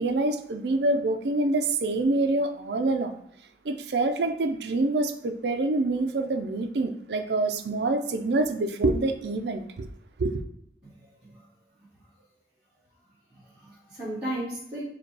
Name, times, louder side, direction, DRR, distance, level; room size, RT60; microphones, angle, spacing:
voice 1, 0.0-3.2 3.6-9.9 10.2-10.4, right 2 dB, 70° right, 0.4 m, -26 dB
voice 2, 11.0-11.3 13.3-14.8, right 1 dB, 5° right, 1.5 m, -35 dB
5.0 x 2.3 x 4.6 m
head